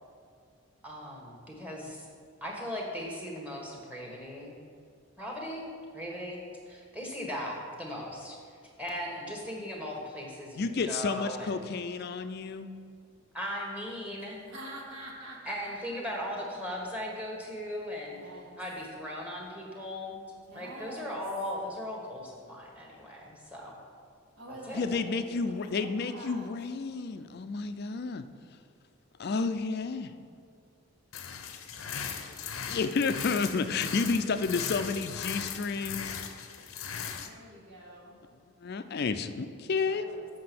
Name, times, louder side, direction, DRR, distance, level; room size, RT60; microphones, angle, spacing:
voice 1, 0.8-2.1 2.4-4.6 5.2-5.7 5.9-6.4 6.7-8.4 8.8-11.6 13.3-14.4 15.4-18.2 18.6-20.2 20.5-23.8 24.5-24.8, equal, 5° right, -1 dB, 1.3 m, -38 dB
voice 2, 10.6-12.7 24.7-28.3 29.2-30.1 32.6-36.2 38.6-40.1, left 4 dB, 50° left, 10 dB, 0.4 m, -31 dB
voice 3, 14.4-16.5 18.0-18.6 20.5-21.3 24.4-26.5 37.2-38.2 39.5-40.3, right 1 dB, 70° right, -3 dB, 1.7 m, -47 dB
sound 1, 31.1-37.3, left 7 dB, 85° left, 0.7 m, -38 dB
7.6 x 5.9 x 6.0 m, 2.2 s
head